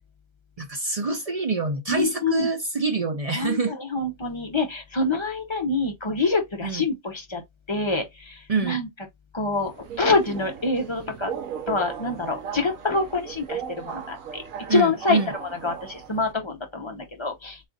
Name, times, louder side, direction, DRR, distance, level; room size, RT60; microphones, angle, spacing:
voice 1, 0.6-3.7 6.6-6.8 8.5-8.8 14.7-15.3, right 4 dB, 55° right, 0.4 m, -26 dB
voice 2, 1.9-2.5 3.3-7.4 7.7-8.9 9.3-11.3 11.7-14.4 14.7-17.6, left 3 dB, 30° left, 0.6 m, -26 dB
Subway metro underground, 9.5-16.3, right 8 dB, 75° right, 1.2 m, -37 dB
4.1 x 2.4 x 3.9 m
omnidirectional pair, 1.4 m